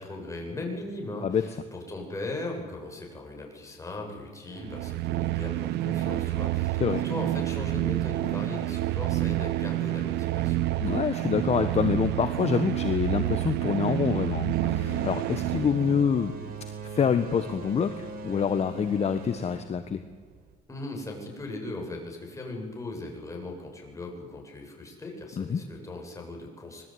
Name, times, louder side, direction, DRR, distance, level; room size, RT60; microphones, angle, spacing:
voice 1, 0.0-10.6 20.7-26.8, left 2 dB, 20° left, 1 dB, 8.0 m, -38 dB
sound 1, 4.5-16.2, right 16 dB, 85° right, 0.9 m, -28 dB
voice 2, 10.8-16.3 16.9-20.0 25.4-25.6, left 7 dB, 40° left, 9 dB, 1.4 m, -26 dB
sound 2, 14.5-20.5, right 3 dB, 60° right, 4.9 m, -40 dB
25.5 x 21.0 x 9.6 m, 1.4 s
cardioid pair, 110°, 17 cm